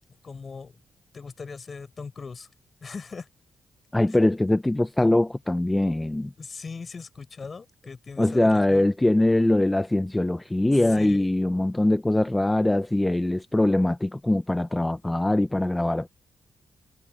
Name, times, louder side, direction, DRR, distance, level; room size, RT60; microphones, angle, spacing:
voice 1, 0.2-0.7 1.1-2.5 2.8-3.3 6.4-8.9 11.0-11.3, left 5 dB, 35° left, 6.7 m, -39 dB
voice 2, 3.9-6.3 8.2-16.1, left 1 dB, 10° left, 0.5 m, -22 dB
wide cardioid pair, 140°, 0 cm